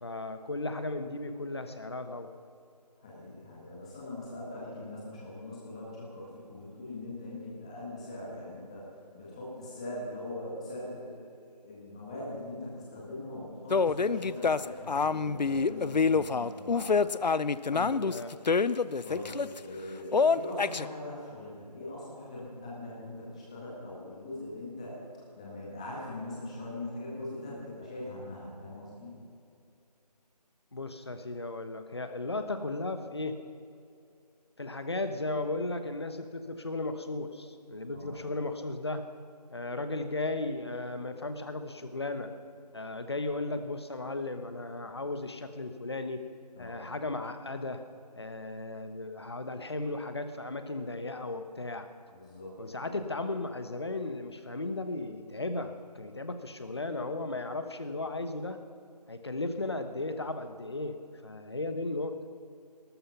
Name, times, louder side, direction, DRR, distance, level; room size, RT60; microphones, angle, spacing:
voice 1, 0.0-2.3 17.7-18.4 30.7-33.4 34.6-39.0 39.5-42.3 42.7-46.2 46.6-47.8 48.2-51.9 52.6-58.6 59.1-61.0 61.2-62.1, left 2 dB, 40° left, 8 dB, 1.1 m, -35 dB
voice 2, 3.0-8.9 9.1-17.2 19.0-25.0 25.4-29.2 37.9-38.3 46.6-46.9 52.1-53.0, left 1 dB, 10° left, -6 dB, 1.6 m, -41 dB
sound 1, 13.7-19.6 20.1-20.9, left 5 dB, 90° left, 0.6 m, -26 dB
18.5 x 13.0 x 5.8 m, 2.5 s
figure-of-eight pair, 175°, 21 cm